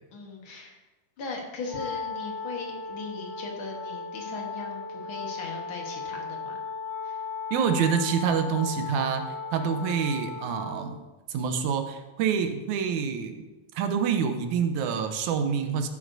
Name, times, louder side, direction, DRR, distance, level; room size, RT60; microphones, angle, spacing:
voice 1, 0.1-0.8 1.2-6.6 7.0-7.2, left 3 dB, 50° left, 1 dB, 1.7 m, -39 dB
Wind instrument woodwind instrument, 1.6-10.8, left 5 dB, 35° left, 3.9 m, -36 dB
voice 2, 7.5-11.0 11.3-13.5 13.8-15.9, right 6 dB, 75° right, 7 dB, 2.1 m, -27 dB
13.0 x 8.5 x 2.6 m, 1.2 s
omnidirectional pair, 3.6 m